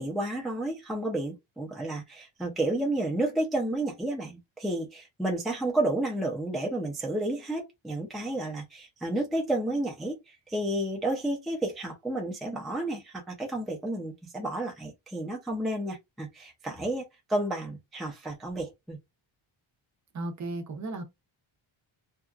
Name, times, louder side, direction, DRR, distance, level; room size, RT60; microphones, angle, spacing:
voice 1, 0.0-19.0, right 1 dB, ahead, 0.4 m, -31 dB
voice 2, 20.1-21.0, right 2 dB, 35° right, 0.6 m, -34 dB
2.8 x 2.4 x 2.3 m
wide cardioid pair, 160°, 49 cm